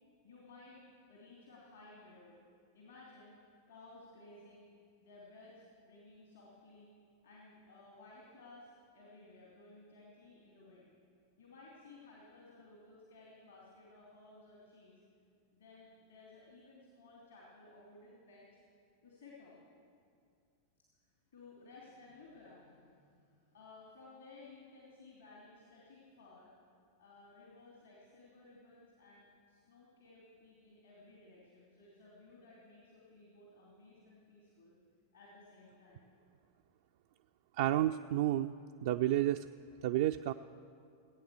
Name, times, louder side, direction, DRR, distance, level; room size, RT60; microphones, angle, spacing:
voice 1, 0.2-0.8 1.1-2.4 2.7-3.4 3.7-4.7 5.0-6.9 7.2-10.9 11.4-15.0 15.5-18.6 19.0-19.7 21.3-26.5 27.0-34.7 35.1-36.0, left 2 dB, 70° left, -4 dB, 2.9 m, -57 dB
voice 2, 37.6-38.5 38.8-39.4 39.8-40.3, right 13 dB, 55° right, 6 dB, 0.3 m, -30 dB
17.5 x 9.1 x 6.9 m, 2.3 s
figure-of-eight pair, 90°, 0 cm